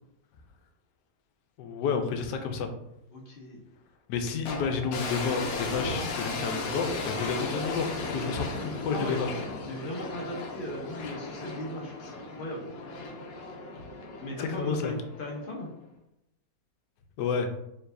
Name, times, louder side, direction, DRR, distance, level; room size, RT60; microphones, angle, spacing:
voice 1, 1.6-2.7 4.1-9.3 14.3-14.9 17.2-17.5, left 5 dB, 85° left, 6 dB, 1.2 m, -31 dB
voice 2, 3.1-3.6 8.9-9.2 9.7-12.7 14.2-15.7, left 1 dB, 40° left, -2 dB, 0.8 m, -37 dB
sound 1, 4.5-15.7, left 3 dB, 65° left, 1.1 m, -36 dB
4.5 x 3.3 x 2.6 m, 0.84 s
omnidirectional pair, 1.8 m